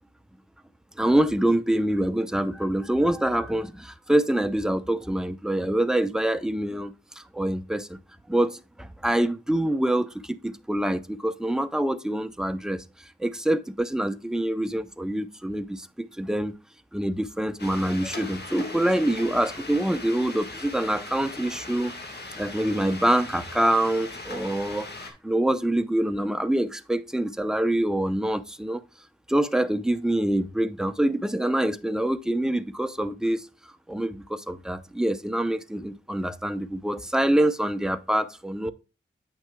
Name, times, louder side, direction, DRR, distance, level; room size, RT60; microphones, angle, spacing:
voice 1, 1.0-8.0 8.3-16.5 16.9-21.9 22.4-28.8 29.3-33.5 33.9-38.7, right 1 dB, 5° right, 0.7 m, -25 dB
sound 1, 17.6-25.1, left 2 dB, 55° left, 1.6 m, -39 dB
8.8 x 6.1 x 2.3 m
cardioid pair, 50°, 20 cm